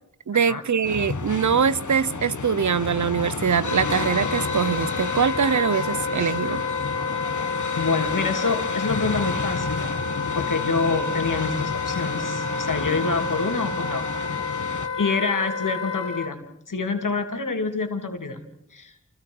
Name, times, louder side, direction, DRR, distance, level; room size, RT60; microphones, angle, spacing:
voice 1, 0.3-6.6, right 7 dB, 70° right, 0.8 m, -23 dB
sound 1, 0.8-14.9, left 4 dB, 70° left, 1.7 m, -32 dB
Wind instrument woodwind instrument, 3.6-16.3, left 4 dB, 55° left, 2.8 m, -29 dB
voice 2, 7.7-9.9 10.3-18.4 18.7-18.9, left 4 dB, 90° left, 2.6 m, -27 dB
29.0 x 26.0 x 4.7 m
cardioid pair, 40°, 31 cm